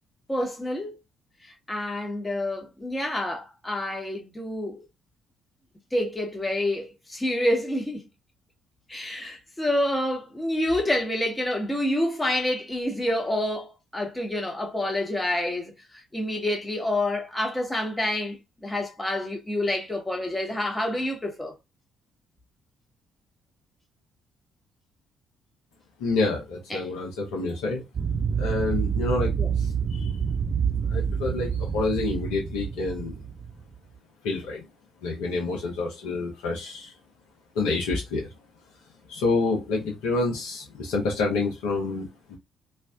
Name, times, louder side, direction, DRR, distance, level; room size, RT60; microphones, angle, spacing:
voice 1, 0.3-1.0 1.4-4.8 5.9-8.1 8.9-21.6 26.7-26.9 29.4-29.5, left 1 dB, 15° left, 1.3 m, -28 dB
voice 2, 26.0-27.8 28.4-29.7 30.0-30.1 30.9-33.1 34.2-34.6 35.0-36.9 37.6-38.3 39.1-42.4, left 3 dB, 65° left, 0.8 m, -28 dB
sound 1, 27.9-33.7, right 7 dB, 45° right, 0.9 m, -27 dB
3.3 x 2.5 x 2.4 m
figure-of-eight pair, 45°, 0 cm